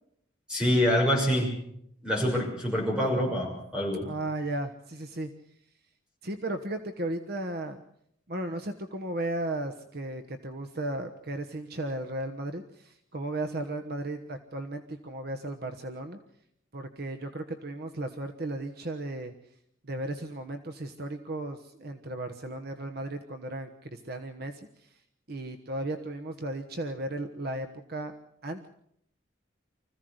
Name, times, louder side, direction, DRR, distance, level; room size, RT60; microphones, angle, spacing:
voice 1, 0.5-1.5 2.0-4.1, equal, 5° right, 0 dB, 6.2 m, -26 dB
voice 2, 4.0-5.3 6.2-7.8 8.3-16.2 16.7-19.3 19.8-24.9 25.3-28.1 28.4-28.7, right 1 dB, 50° right, 7 dB, 1.3 m, -35 dB
25.0 x 15.5 x 8.0 m, 0.72 s
head